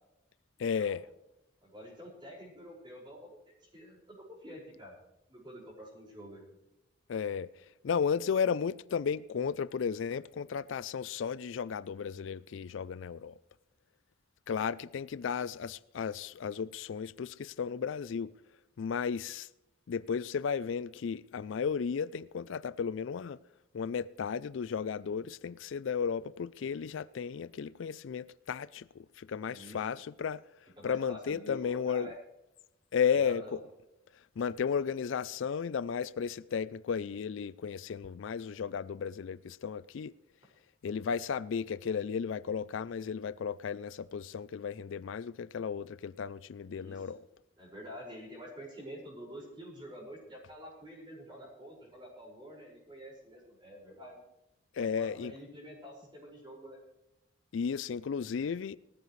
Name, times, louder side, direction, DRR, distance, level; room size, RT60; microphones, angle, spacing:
voice 1, 0.6-1.0 7.1-7.5 7.8-13.3 14.5-18.3 18.8-19.5 19.9-23.4 23.7-30.4 30.8-32.1 32.9-33.6 34.4-40.1 40.8-47.2 54.7-55.3 57.5-58.8, left 6 dB, 70° left, 0.4 m, -34 dB
voice 2, 1.6-5.0 5.3-6.4 29.5-29.8 30.8-32.1 33.1-33.6 46.6-47.1 47.6-54.2 54.8-56.8, equal, 25° right, 5.3 m, -48 dB
19.0 x 14.0 x 3.2 m
head